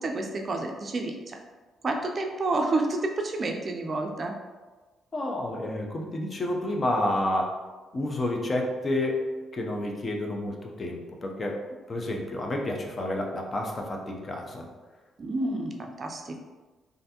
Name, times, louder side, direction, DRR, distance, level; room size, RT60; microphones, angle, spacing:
voice 1, 0.0-1.4 1.8-4.3 15.2-16.4, right 2 dB, 40° right, 3 dB, 0.4 m, -29 dB
voice 2, 5.1-7.5 7.9-9.2 9.5-11.6 11.9-14.7, left 1 dB, 35° left, 1 dB, 0.5 m, -30 dB
3.2 x 2.5 x 2.8 m, 1.3 s
cardioid pair, 90°, 0 cm